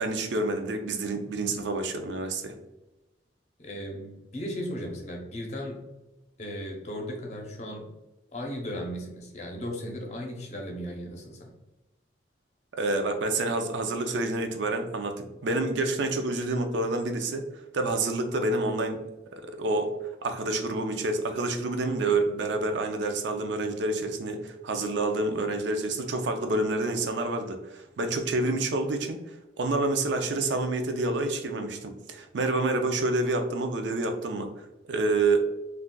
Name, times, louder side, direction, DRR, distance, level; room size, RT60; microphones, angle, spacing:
voice 1, 0.0-2.6 12.8-17.4 17.7-19.0 19.3-35.4, right 2 dB, 75° right, 6 dB, 0.5 m, -28 dB
voice 2, 3.6-5.8 6.4-7.9 8.3-11.5, equal, 35° left, 0 dB, 0.6 m, -36 dB
3.7 x 2.3 x 2.2 m, 1.0 s
head